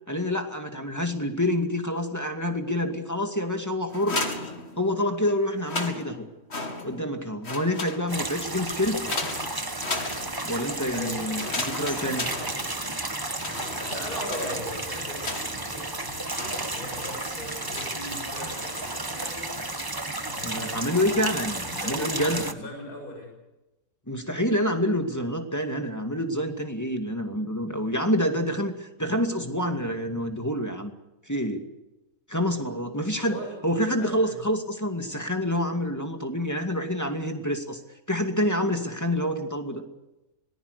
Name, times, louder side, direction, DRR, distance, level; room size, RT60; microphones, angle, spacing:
voice 1, 0.1-4.2 4.8-6.3 6.8-9.1 10.4-12.3 20.4-22.4 24.1-30.9 31.3-31.6 32.3-37.8 38.1-39.8, equal, 10° left, 4 dB, 2.2 m, -27 dB
sound 1, 3.9-5.1 5.5-7.1 7.4-8.4 9.1-10.6 11.3-13.0 13.3-15.8 16.3-17.1 17.7-18.1 18.5-19.0, left 2 dB, 35° left, 2.6 m, -35 dB
sound 2, 8.1-22.5, right 2 dB, 15° right, 1.2 m, -33 dB
voice 2, 10.9-11.4 13.9-16.3 16.7-19.6 20.3-21.1 21.6-23.3 33.2-33.6 34.0-34.3, left 1 dB, 60° left, 1 dB, 7.7 m, -39 dB
25.5 x 20.0 x 6.8 m, 0.99 s
omnidirectional pair, 1.8 m